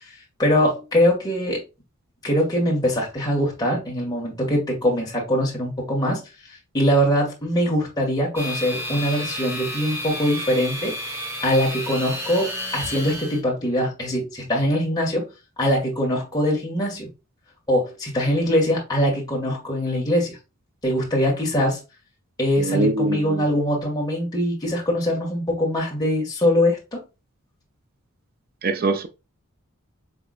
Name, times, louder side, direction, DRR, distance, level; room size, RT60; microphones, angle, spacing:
voice 1, 0.4-1.6 2.2-6.2 6.7-10.9 11.4-15.3 15.6-17.1 17.7-20.4 20.8-21.8 22.4-27.0, equal, 20° left, 1.7 m, -22 dB
sound 1, 8.4-13.4, left 1 dB, 10° right, 1.0 m, -31 dB
voice 2, 22.6-23.4 28.6-29.1, right 2 dB, 45° right, 0.5 m, -23 dB
4.9 x 3.6 x 2.4 m
head